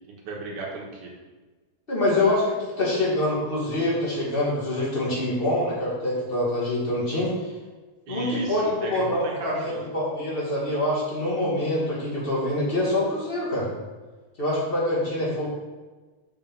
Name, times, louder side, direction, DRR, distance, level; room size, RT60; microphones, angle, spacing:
voice 1, 0.1-1.1 8.1-9.8, right 3 dB, 90° right, -2 dB, 3.0 m, -34 dB
voice 2, 1.9-7.5 8.1-13.7 14.4-15.5, left 1 dB, 20° left, -5 dB, 2.2 m, -25 dB
6.9 x 5.6 x 5.7 m, 1.3 s
omnidirectional pair, 3.4 m